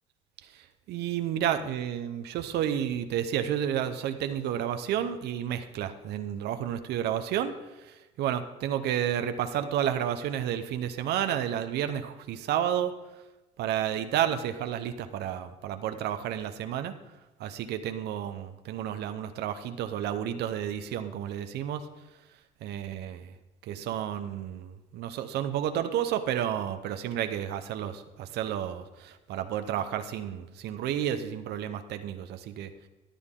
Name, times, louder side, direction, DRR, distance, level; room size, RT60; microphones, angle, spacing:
voice 1, 0.9-7.5 7.8-12.9 13.6-16.9 17.4-21.9 22.6-23.3 23.6-32.7, right 10 dB, 75° right, 9 dB, 0.8 m, -31 dB
14.0 x 10.0 x 3.8 m, 1.1 s
cardioid pair, 110°, 17 cm